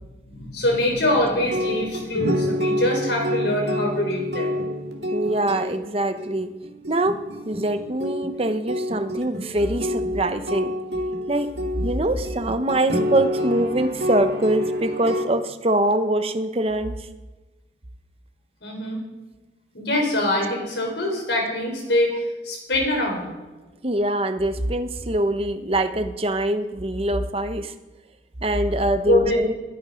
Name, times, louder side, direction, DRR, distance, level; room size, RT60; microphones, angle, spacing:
voice 1, 0.3-4.6 18.6-19.0 19.7-23.3 29.0-29.4, left 1 dB, 75° left, 1 dB, 4.8 m, -24 dB
sound 1, 1.3-15.2, equal, 60° right, 2.2 m, -28 dB
voice 2, 5.1-6.5 6.9-7.2 7.4-10.7 11.3-11.5 11.8-17.1 23.8-27.7 28.4-29.5, right 1 dB, 30° right, 9 dB, 0.9 m, -23 dB
21.0 x 9.4 x 5.2 m, 1.2 s
head